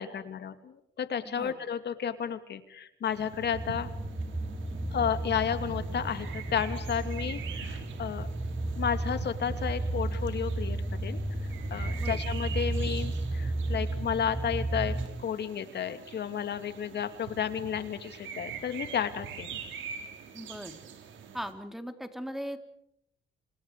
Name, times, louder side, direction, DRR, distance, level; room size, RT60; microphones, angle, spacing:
voice 1, 0.0-3.9 4.9-8.3 8.8-11.2 11.7-19.6, left 8 dB, 60° left, 9 dB, 2.7 m, -32 dB
sound 1, 3.0-21.5, right 7 dB, 75° right, 4.9 m, -45 dB
sound 2, 3.4-15.1, right 2 dB, 20° right, 2.8 m, -33 dB
voice 2, 20.3-20.8 21.3-22.6, equal, ahead, 7 dB, 3.6 m, -39 dB
30.0 x 27.0 x 5.0 m, 0.76 s
cardioid pair, 90°, 20 cm